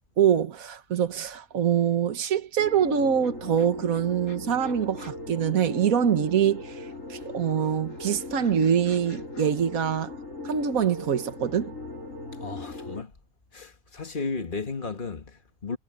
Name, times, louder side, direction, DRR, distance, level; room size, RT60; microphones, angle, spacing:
voice 1, 0.2-10.1 10.4-11.7, right 8 dB, 75° right, 1.7 m, -24 dB
sound 1, 1.4-1.5 1.7-6.3 6.7-9.5, left 2 dB, 85° left, 7.3 m, -55 dB
sound 2, 2.6-13.0, left 2 dB, 60° left, 6.3 m, -39 dB
voice 2, 12.4-13.1 13.5-15.8, left 4 dB, 35° left, 1.8 m, -34 dB
omnidirectional pair, 1.5 m